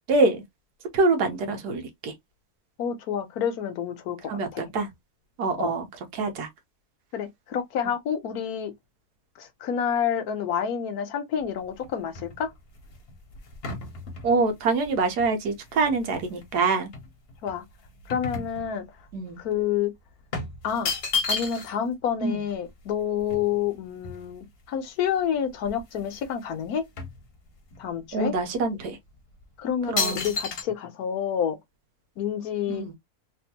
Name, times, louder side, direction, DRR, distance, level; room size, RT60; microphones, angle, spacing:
voice 1, 0.1-0.4 0.9-2.1 4.3-4.9 5.4-5.9 6.1-6.5 14.2-16.9 19.1-19.4 22.2-22.4 28.1-29.0 29.9-30.3 32.7-33.0, right 3 dB, 85° right, 1.5 m, -25 dB
voice 2, 2.8-4.6 5.6-5.7 7.1-8.7 9.4-12.5 17.4-17.6 18.1-18.9 19.4-19.9 20.6-20.9 21.3-26.8 27.8-28.3 29.6-31.6 32.2-32.9, left 8 dB, 75° left, 1.2 m, -28 dB
sound 1, 11.4-16.5 16.9-19.1 19.4-19.6 20.3-21.9 22.2-22.3 22.5-24.6 25.2-25.3 25.5-26.3 26.6-27.8 28.4-28.5 29.2-29.4 30.0-30.6, left 4 dB, 45° left, 1.0 m, -33 dB
3.6 x 2.5 x 2.8 m
omnidirectional pair, 1.6 m